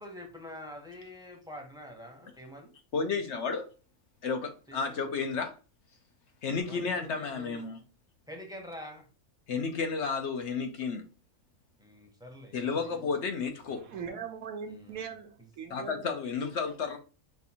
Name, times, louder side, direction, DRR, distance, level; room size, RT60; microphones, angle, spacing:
voice 1, 0.0-2.7 4.7-5.2 6.7-7.6 8.3-9.0 11.8-13.0 14.7-15.0 15.4-15.5, left 1 dB, 5° right, 0.7 m, -46 dB
voice 2, 2.9-3.7 4.2-5.5 6.4-7.8 9.5-11.1 12.5-13.8 15.7-17.0, left 5 dB, 60° left, 0.8 m, -32 dB
voice 3, 13.8-16.1, right 6 dB, 75° right, 1.1 m, -40 dB
5.6 x 2.5 x 2.8 m
omnidirectional pair, 1.5 m